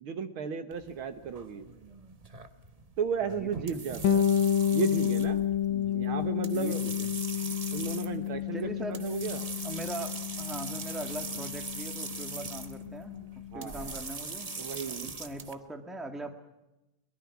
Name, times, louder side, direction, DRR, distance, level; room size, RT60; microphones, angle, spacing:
voice 1, 0.0-1.7 3.0-4.3 4.7-5.5 5.9-6.8 7.7-9.5 13.5-13.9 14.6-15.1, right 6 dB, 70° right, 9 dB, 2.1 m, -34 dB
sound 1, 0.7-15.5, right 4 dB, 35° right, 0.5 m, -41 dB
voice 2, 3.2-3.8 5.7-6.0 6.5-7.1 8.5-9.0 9.6-13.2 13.5-16.3, right 1 dB, ahead, 5 dB, 1.8 m, -41 dB
Bass guitar, 4.0-13.6, left 9 dB, 60° left, 2.0 m, -30 dB
22.5 x 22.5 x 6.0 m, 0.96 s
omnidirectional pair, 2.4 m